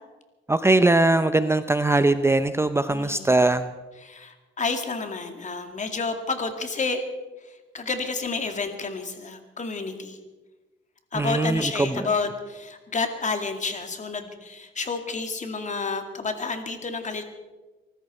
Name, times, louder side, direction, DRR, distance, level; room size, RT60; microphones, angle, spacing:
voice 1, 0.5-3.7 11.1-12.1, right 2 dB, 15° right, 11 dB, 0.6 m, -21 dB
voice 2, 2.9-3.3 4.0-7.0 7.7-10.2 11.1-17.2, left 4 dB, 40° left, 6 dB, 2.3 m, -30 dB
24.0 x 13.5 x 4.3 m, 1.2 s
cardioid pair, 90°, 20 cm